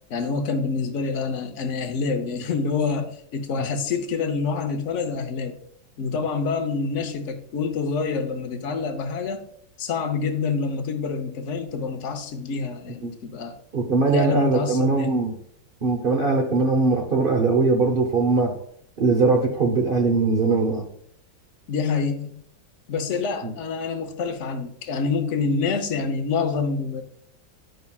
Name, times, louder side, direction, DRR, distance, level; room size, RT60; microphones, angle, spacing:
voice 1, 0.1-5.6 6.0-9.4 9.8-13.6 14.1-15.1 21.7-22.4 22.9-27.0, left 4 dB, 60° left, 5 dB, 0.8 m, -27 dB
voice 2, 13.7-15.3 15.8-18.5 19.0-20.9 23.4-23.5, right 3 dB, 65° right, 2 dB, 0.5 m, -21 dB
9.3 x 5.5 x 2.3 m, 0.67 s
omnidirectional pair, 2.1 m